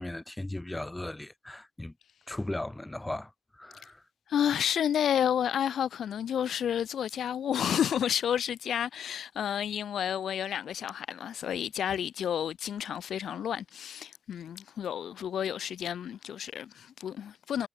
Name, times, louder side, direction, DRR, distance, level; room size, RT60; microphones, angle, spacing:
voice 1, 0.0-1.9 2.3-3.3 3.6-4.0, left 1 dB, 10° left, 0.9 m, -37 dB
voice 2, 4.3-17.7, left 9 dB, 80° left, 0.7 m, -30 dB
wide cardioid pair, 125°, 0 cm